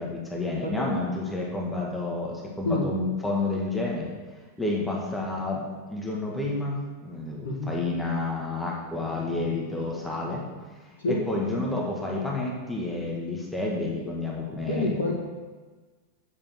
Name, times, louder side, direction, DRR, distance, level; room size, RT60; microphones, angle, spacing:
voice 1, 0.0-4.1 4.6-10.4 11.3-15.1, left 2 dB, 5° left, -3 dB, 2.0 m, -30 dB
voice 2, 7.4-7.7 11.0-11.2 14.7-15.1, left 2 dB, 60° left, -6 dB, 1.7 m, -28 dB
8.2 x 7.3 x 6.4 m, 1.4 s
figure-of-eight pair, 90°, 0 cm